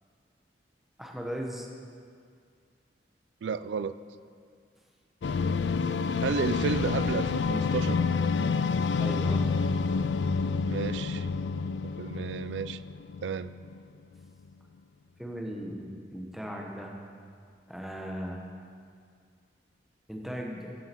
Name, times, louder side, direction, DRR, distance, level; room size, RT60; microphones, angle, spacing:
voice 1, 1.0-1.7 9.0-9.5 15.2-16.9 17.7-18.4 20.1-20.7, equal, ahead, 0 dB, 1.1 m, -37 dB
voice 2, 3.4-4.0 6.2-8.0 10.7-11.3 11.8-12.8 13.2-13.5, right 6 dB, 85° right, 14 dB, 0.4 m, -32 dB
sound 1, 5.2-13.8, left 5 dB, 75° left, 0.4 m, -28 dB
13.0 x 7.5 x 4.5 m, 2.2 s
head